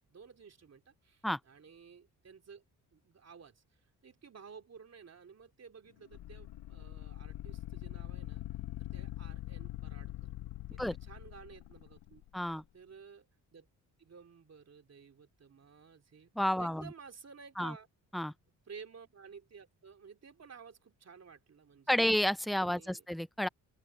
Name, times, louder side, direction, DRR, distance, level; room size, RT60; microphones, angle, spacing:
voice 1, 0.1-2.6 2.9-8.4 8.8-10.3 10.7-12.2 12.5-13.7 14.0-16.3 16.6-17.9 18.7-22.0 22.6-23.1, right 6 dB, 45° right, 3.0 m, -54 dB
sound 1, 6.1-12.3, left 13 dB, 80° left, 1.2 m, -43 dB
voice 2, 12.3-12.6 16.4-16.9 17.6-17.7 18.1-18.3 21.9-23.5, left 1 dB, ahead, 0.4 m, -31 dB
open air
cardioid pair, 70°, 35 cm